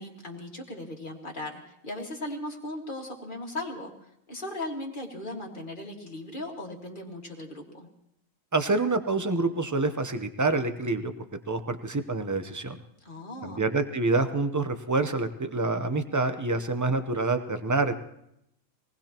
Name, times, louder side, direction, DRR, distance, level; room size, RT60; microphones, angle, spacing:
voice 1, 0.0-3.9 4.3-7.9 13.0-13.7, left 1 dB, 40° left, 0 dB, 2.1 m, -37 dB
voice 2, 8.5-11.1 11.5-12.8 13.4-17.9, right 3 dB, 20° right, 8 dB, 0.6 m, -27 dB
24.5 x 19.5 x 3.0 m, 0.76 s
omnidirectional pair, 1.4 m